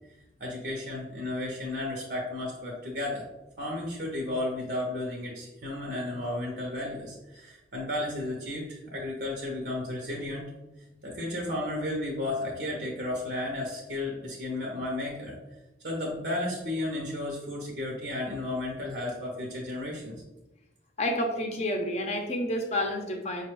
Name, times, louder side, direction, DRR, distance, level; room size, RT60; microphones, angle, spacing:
voice 1, 0.4-3.2 3.6-10.5 11.0-15.3 15.8-20.2, left 1 dB, 70° right, -1 dB, 0.7 m, -33 dB
voice 2, 21.0-23.4, left 1 dB, 40° left, 2 dB, 0.6 m, -29 dB
5.2 x 2.2 x 3.0 m, 1.0 s
head